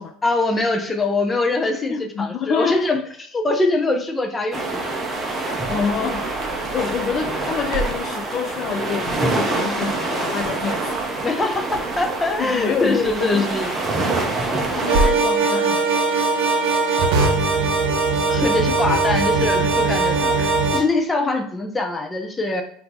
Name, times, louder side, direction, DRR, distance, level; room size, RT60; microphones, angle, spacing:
voice 1, 0.2-4.8 11.2-13.7 17.4-17.6 18.3-22.6, left 2 dB, 15° left, 5 dB, 0.7 m, -23 dB
voice 2, 1.9-2.9 5.7-6.2 6.7-10.9 12.4-13.5 14.7-15.9, left 7 dB, 40° left, 5 dB, 0.4 m, -26 dB
sound 1, 4.5-15.1, right 3 dB, 15° right, 0.8 m, -26 dB
Crackle, 5.1-15.4, right 1 dB, 45° right, 1.3 m, -33 dB
sound 2, 14.9-20.8, right 3 dB, 65° right, 0.9 m, -20 dB
4.3 x 2.7 x 4.0 m, 0.63 s
supercardioid pair, 125°, 0 cm